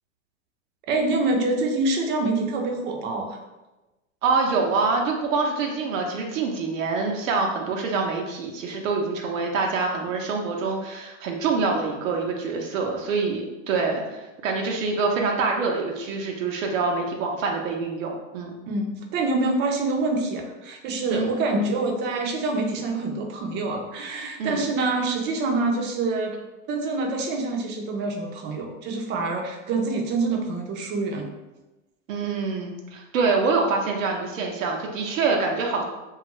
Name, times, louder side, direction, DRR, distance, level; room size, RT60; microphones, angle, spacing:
voice 1, 0.9-3.4 18.7-26.4 26.7-31.3, right 3 dB, 30° right, 3 dB, 0.4 m, -26 dB
voice 2, 4.2-18.6 21.1-21.3 24.4-24.6 32.1-35.8, right 4 dB, 90° right, 1 dB, 0.6 m, -25 dB
2.5 x 2.3 x 2.9 m, 1.0 s
hypercardioid pair, 120°, 38 cm